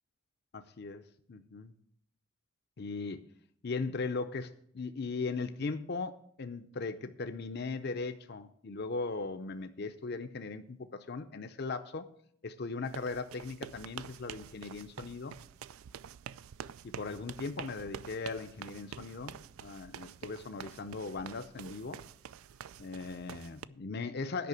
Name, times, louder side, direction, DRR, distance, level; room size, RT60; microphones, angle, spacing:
voice 1, 0.5-1.7 2.8-3.3 3.6-12.0 12.4-15.3 16.8-22.0 22.8-24.5, left 4 dB, 50° left, 9 dB, 0.6 m, -38 dB
sound 1, 12.8-23.7, right 8 dB, 90° right, 0.4 m, -47 dB
9.3 x 5.7 x 8.3 m, 0.65 s
head